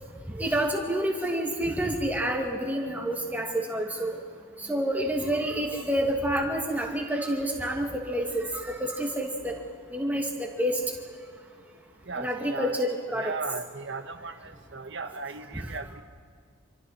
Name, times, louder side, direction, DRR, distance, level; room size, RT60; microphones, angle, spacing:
voice 1, 0.4-4.2 4.7-9.5 9.9-10.8 12.2-13.3, right 1 dB, 10° right, 0 dB, 2.3 m, -28 dB
voice 2, 12.1-12.8 13.1-16.0, right 4 dB, 60° right, 8 dB, 1.2 m, -37 dB
27.5 x 24.5 x 4.4 m, 2.1 s
head